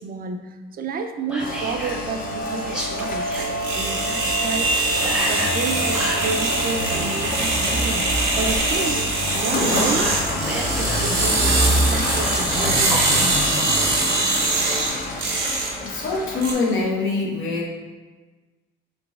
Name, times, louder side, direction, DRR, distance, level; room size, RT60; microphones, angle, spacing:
voice 1, 0.0-3.3 3.7-4.8 5.3-8.1 8.3-9.0 9.3-13.3 14.1-14.2, right 4 dB, 50° right, 7 dB, 0.4 m, -30 dB
Whispering, 1.3-2.0 2.6-3.5 5.0-6.3 9.3-11.2 12.0-13.3, equal, 5° right, 0.7 m, -31 dB
Rain, 1.4-16.8, left 1 dB, 45° left, 0.7 m, -27 dB
sound 1, 1.8-16.5, right 3 dB, 75° right, 0.9 m, -24 dB
voice 2, 15.8-17.7, left 3 dB, 75° left, -3 dB, 1.0 m, -24 dB
4.3 x 3.8 x 2.3 m, 1.3 s
cardioid pair, 90°, 20 cm